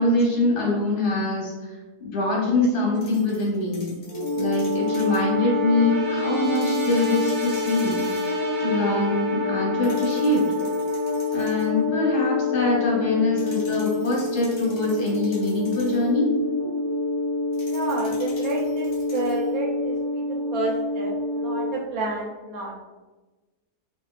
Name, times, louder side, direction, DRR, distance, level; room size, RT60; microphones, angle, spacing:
voice 1, 0.0-1.7 2.0-4.0 4.4-8.0 8.6-10.5 11.3-16.3, left 2 dB, 75° left, -3 dB, 1.6 m, -24 dB
sound 1, 3.0-5.3 6.4-8.4 9.8-11.8 13.4-16.1 17.5-19.5, left 2 dB, 50° left, 1.2 m, -47 dB
sound 2, 4.0-21.7, left 3 dB, 35° right, 0.9 m, -26 dB
voice 2, 17.6-22.7, right 3 dB, 70° right, -1 dB, 1.0 m, -30 dB
4.4 x 2.5 x 2.3 m, 1.2 s
omnidirectional pair, 1.7 m